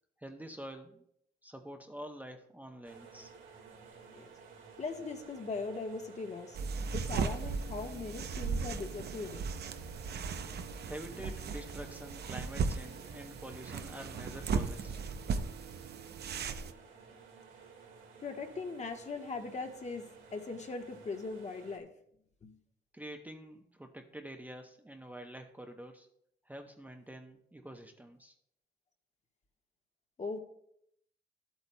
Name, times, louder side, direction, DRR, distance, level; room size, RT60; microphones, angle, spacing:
voice 1, 0.2-1.1 1.4-3.3 10.8-15.0 22.9-26.1 26.4-28.3, right 1 dB, 10° right, 3 dB, 0.8 m, -47 dB
sound 1, 2.8-21.8, right 5 dB, 80° right, 2.0 m, -54 dB
voice 2, 4.8-6.6 6.9-9.5 18.2-21.9 22.4-22.6 30.2-30.4, left 4 dB, 35° left, 4 dB, 1.3 m, -40 dB
sound 2, 6.5-16.7, right 5 dB, 55° right, 0.7 m, -37 dB
13.0 x 8.1 x 2.2 m, 0.72 s
cardioid pair, 90°, 20 cm